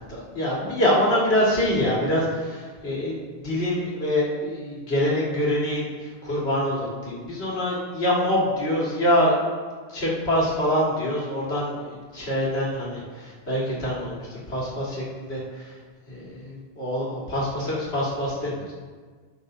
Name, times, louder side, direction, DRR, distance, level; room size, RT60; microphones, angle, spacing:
voice 1, 0.1-9.4 9.9-12.9 13.1-15.8 16.1-18.7, left 1 dB, 85° left, -6 dB, 2.3 m, -25 dB
13.5 x 5.6 x 2.7 m, 1.5 s
omnidirectional pair, 1.1 m